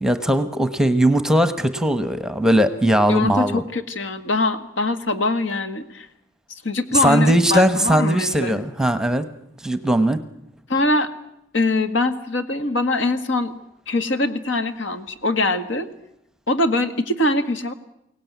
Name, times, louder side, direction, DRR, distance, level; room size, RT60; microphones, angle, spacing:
voice 1, 0.0-3.6 6.9-9.3 9.6-10.2, right 1 dB, 5° right, 10 dB, 1.0 m, -19 dB
voice 2, 3.1-6.1 6.5-8.6 10.7-11.1 11.5-13.5 13.9-15.9 16.5-17.7, left 2 dB, 75° left, 9 dB, 1.8 m, -23 dB
23.0 x 18.0 x 9.4 m, 0.80 s
head